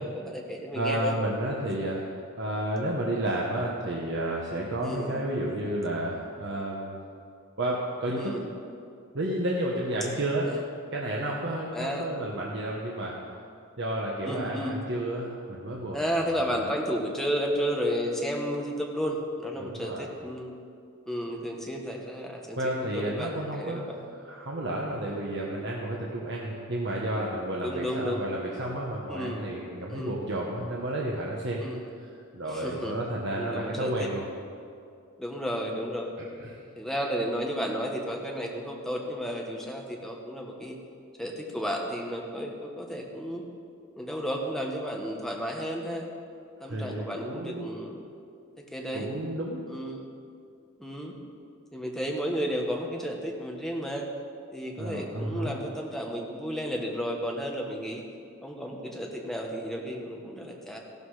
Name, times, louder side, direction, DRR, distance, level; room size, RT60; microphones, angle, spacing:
voice 1, 0.0-1.2 4.8-5.1 8.2-8.4 10.4-10.6 11.7-12.1 14.2-14.8 15.9-20.5 21.1-23.9 27.6-28.2 29.1-29.4 29.9-30.2 31.6-31.9 32.5-33.0 33.3-34.1 35.2-36.1 36.8-40.8 41.2-43.4 44.0-46.0 46.6-48.1 48.6-49.1 49.7-50.0 50.8-51.1 51.7-54.0 54.5-58.0 58.4-60.8, equal, ahead, 0 dB, 1.4 m, -32 dB
voice 2, 0.7-2.0 2.4-7.0 7.6-8.3 9.1-10.5 10.9-13.2 13.8-16.7 19.6-20.1 22.6-23.8 24.2-31.6 32.0-34.2 36.4-36.6 46.6-47.7 48.9-49.7 54.8-55.5, right 1 dB, 55° right, -3 dB, 1.3 m, -31 dB
15.0 x 12.0 x 4.9 m, 2.4 s
head